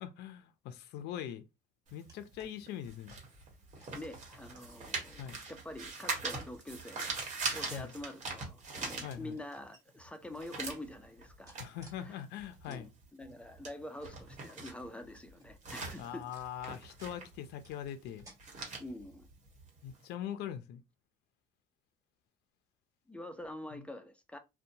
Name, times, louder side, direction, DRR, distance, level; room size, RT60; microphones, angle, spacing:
voice 1, 0.0-1.4 1.9-3.1 5.2-5.4 7.7-7.9 9.0-9.4 11.6-12.9 16.0-18.3 19.8-20.8, left 10 dB, 80° left, 0.4 m, -42 dB
sound 1, 1.9-9.6 10.0-20.0, right 3 dB, 45° right, 1.2 m, -42 dB
sound 2, 2.1-2.6 3.1-3.3 3.8-4.6 5.1-5.6 6.3-7.6 7.9-8.4 8.9-9.8 10.4-10.8 11.4-12.0 12.4-12.8 13.2-13.3 14.0-14.8 15.1-15.7 16.1-17.3 17.6-18.4 18.9-19.2, right 1 dB, 20° right, 1.7 m, -61 dB
voice 2, 3.9-7.2 7.5-11.5 12.0-12.2 12.7-16.3 18.8-19.3 23.1-24.4, left 1 dB, 5° left, 0.4 m, -46 dB
2.7 x 2.2 x 2.6 m
cardioid pair, 110°, 17 cm